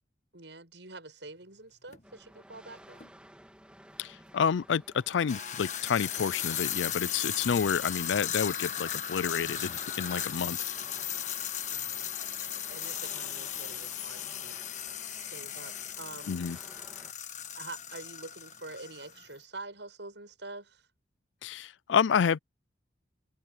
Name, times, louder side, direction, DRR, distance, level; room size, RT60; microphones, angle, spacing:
voice 1, 0.3-3.1 11.7-16.4 17.1-17.2 17.6-20.9, right 2 dB, 75° right, 7.2 m, -46 dB
sound 1, 1.9-2.0 3.0-3.1 5.1-19.2, left 10 dB, 40° left, 1.5 m, -36 dB
sound 2, 2.0-17.1, right 1 dB, 5° right, 2.6 m, -54 dB
voice 2, 4.0-10.7 16.3-16.6 21.4-22.4, left 7 dB, 85° left, 0.4 m, -29 dB
head